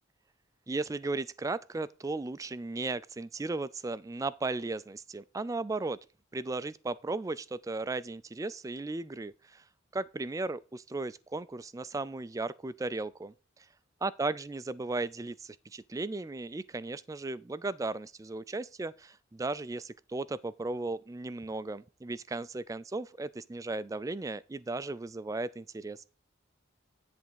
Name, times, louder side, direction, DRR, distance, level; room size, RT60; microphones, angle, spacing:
voice 1, 0.7-6.0 6.3-9.6 9.9-13.7 14.0-26.0, right 3 dB, 15° right, 0.3 m, -36 dB
10.5 x 3.5 x 7.0 m
head